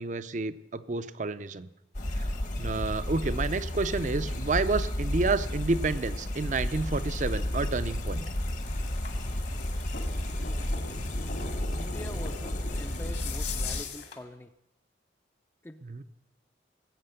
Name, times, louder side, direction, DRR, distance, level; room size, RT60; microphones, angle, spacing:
voice 1, 0.0-1.7 2.1-2.3 2.6-8.3 15.8-16.0, right 3 dB, 45° right, 13 dB, 0.5 m, -30 dB
sound 1, 1.9-13.8, left 1 dB, 45° left, 1.1 m, -32 dB
sound 2, 3.2-14.2, left 5 dB, 70° left, 2.3 m, -43 dB
voice 2, 11.8-14.5 15.6-15.8, left 1 dB, 15° left, 8 dB, 0.5 m, -44 dB
19.0 x 8.5 x 6.6 m, 0.93 s
head